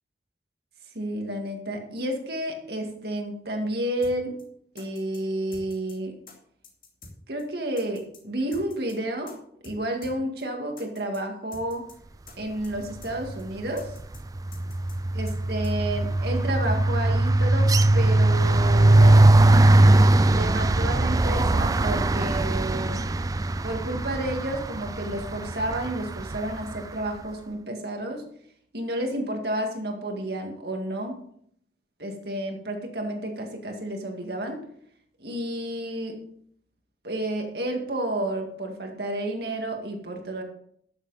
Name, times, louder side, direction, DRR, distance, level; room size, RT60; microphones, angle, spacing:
voice 1, 0.9-4.4 4.7-6.2 7.3-9.4 9.6-11.8 12.4-13.9 15.2-19.3 20.2-23.0 23.6-28.2 28.7-31.2 32.0-34.6 35.2-36.2 37.0-40.4, right 1 dB, 60° right, 3 dB, 2.0 m, -31 dB
sound 1, 4.0-4.1 4.4-4.5 4.8-5.2 5.5-5.9 6.3-6.4 6.6-7.1 7.4-7.5 7.8-8.2 8.5-8.9 9.3-9.4 9.6-9.8 10.0-10.1 10.4-10.5 10.8-11.2 11.5-11.9 12.3-12.4 12.6-13.1 13.4-13.5 13.8-14.2 14.5-14.9 15.3-15.4 15.6-15.7, left 3 dB, 50° left, 2.6 m, -46 dB
sound 2, 13.0-13.4 13.7-26.8, right 2 dB, 20° right, 0.3 m, -20 dB
13.0 x 7.3 x 4.1 m, 0.67 s
head